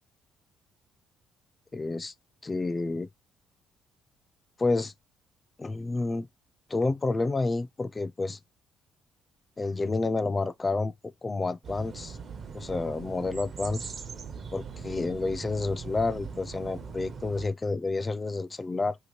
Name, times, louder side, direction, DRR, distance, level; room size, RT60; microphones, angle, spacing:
voice 1, 1.7-2.1 2.4-3.1 4.6-4.9 5.6-6.3 6.7-8.4 9.6-10.9 11.2-12.2 12.5-13.9 14.5-19.0, left 3 dB, 20° left, 0.3 m, -29 dB
sound 1, 11.6-17.5, right 5 dB, 45° right, 0.5 m, -40 dB
2.9 x 2.8 x 3.0 m
cardioid pair, 125°, 0 cm